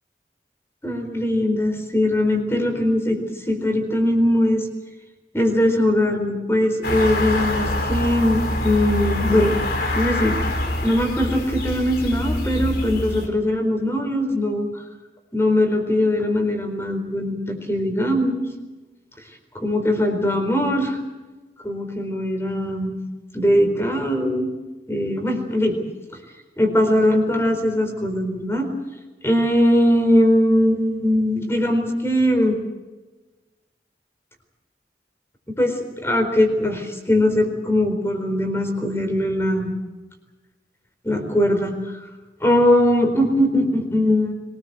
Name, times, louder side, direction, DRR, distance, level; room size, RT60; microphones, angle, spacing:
voice 1, 0.8-3.2 3.5-4.7 5.3-9.5 9.9-14.7 15.3-18.4 19.5-21.0 21.6-22.9 23.3-24.5 24.9-25.8 26.6-28.7 29.2-32.5 35.6-39.7 41.0-42.0 42.4-44.3, left 1 dB, 15° left, 5 dB, 4.3 m, -20 dB
sound 1, 6.8-13.3, left 1 dB, 55° left, 4.1 m, -25 dB
25.0 x 19.5 x 8.0 m, 1.2 s
head